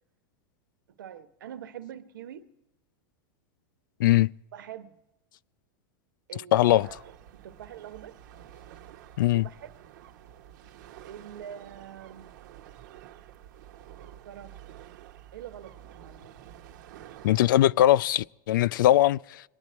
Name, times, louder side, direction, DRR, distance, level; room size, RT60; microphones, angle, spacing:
voice 1, 0.9-2.5 4.5-5.0 6.3-8.2 9.3-9.7 11.0-12.3 14.0-14.6 15.3-16.4, right 10 dB, 90° right, 1.2 m, -44 dB
voice 2, 6.3-6.9 9.2-9.5 17.2-19.4, left 14 dB, 85° left, 0.4 m, -21 dB
sound 1, 6.7-17.7, right 11 dB, 65° right, 1.0 m, -49 dB
24.0 x 9.6 x 4.4 m
supercardioid pair, 135°, 11 cm